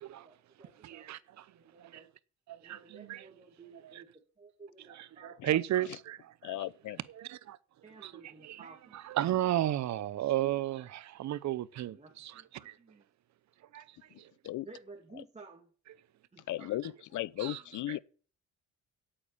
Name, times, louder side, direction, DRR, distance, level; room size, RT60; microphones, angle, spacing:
voice 1, 0.0-2.1 2.6-5.4 7.8-9.0 11.9-13.1 14.6-15.7 16.3-17.9, right 3 dB, 20° right, 2.5 m, -55 dB
voice 2, 0.8-1.2 1.8-1.9 2.5-3.2 5.4-6.6 7.1-7.6 8.0-8.1 8.5-8.6 9.2-12.0 12.7-12.8 13.7-13.8 17.4-17.6 17.9-18.0, right 13 dB, 65° right, 0.8 m, -33 dB
voice 3, 6.4-7.0 14.4-14.7 16.5-18.0, left 15 dB, 75° left, 0.7 m, -36 dB
8.7 x 7.7 x 8.5 m
cardioid pair, 90°, 30 cm